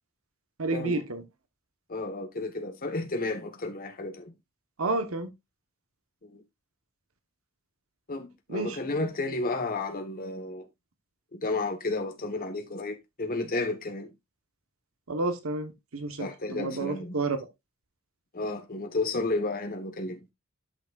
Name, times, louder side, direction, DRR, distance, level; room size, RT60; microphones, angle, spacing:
voice 1, 0.6-1.2 4.8-5.3 8.5-8.8 15.1-17.4, right 3 dB, 85° right, 1.2 m, -30 dB
voice 2, 1.9-4.3 6.2-6.4 8.1-10.6 11.3-14.1 16.2-17.1 18.3-20.2, left 2 dB, 45° left, 1.4 m, -32 dB
11.5 x 6.0 x 2.5 m
head